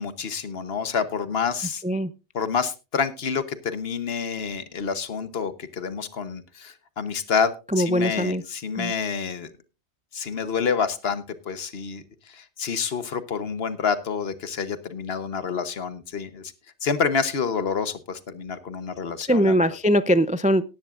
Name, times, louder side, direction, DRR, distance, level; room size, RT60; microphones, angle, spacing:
voice 1, 0.0-1.8 2.3-9.5 10.1-16.5 16.8-19.6, left 6 dB, 60° left, 12 dB, 1.2 m, -28 dB
voice 2, 7.7-8.4 8.8-8.9 19.3-20.6, equal, 15° right, 13 dB, 0.3 m, -21 dB
18.0 x 10.5 x 2.5 m, 0.29 s
omnidirectional pair, 1.2 m